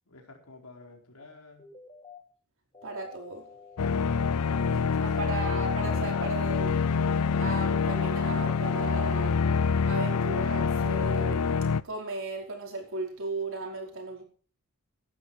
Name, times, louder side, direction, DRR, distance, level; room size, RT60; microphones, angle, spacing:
voice 1, 0.1-1.7 4.7-5.3, left 2 dB, 70° left, 4.5 m, -50 dB
sound 1, 1.6-2.2 2.7-4.7 5.7-6.4 6.8-8.8, left 4 dB, 25° left, 3.1 m, -51 dB
voice 2, 2.8-3.4 4.7-9.4 9.8-11.5 11.8-14.2, right 2 dB, 60° right, 5.2 m, -36 dB
sound 2, 3.8-11.8, left 5 dB, 85° left, 0.6 m, -26 dB
16.5 x 12.0 x 4.8 m
head